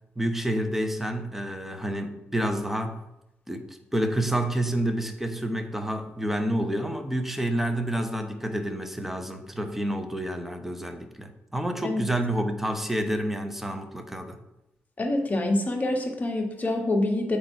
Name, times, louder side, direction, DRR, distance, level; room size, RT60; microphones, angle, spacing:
voice 1, 0.2-3.0 3.5-14.4, right 1 dB, 5° right, 6 dB, 0.9 m, -29 dB
voice 2, 15.0-17.4, left 2 dB, 35° left, 1 dB, 1.5 m, -26 dB
8.0 x 4.0 x 4.5 m, 0.89 s
cardioid pair, 70°, 5 cm